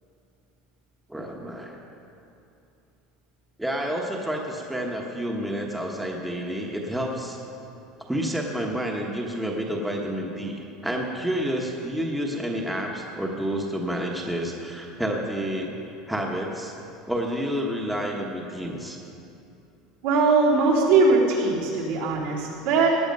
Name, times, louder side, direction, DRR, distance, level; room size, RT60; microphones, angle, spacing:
voice 1, 1.1-1.8 3.6-7.4 8.1-15.7 16.1-16.8 17.1-19.0, equal, 5° right, -1 dB, 1.2 m, -29 dB
voice 2, 20.0-22.9, right 4 dB, 75° right, -5 dB, 3.6 m, -20 dB
18.0 x 9.9 x 5.4 m, 2.8 s
cardioid pair, 155°, 0 cm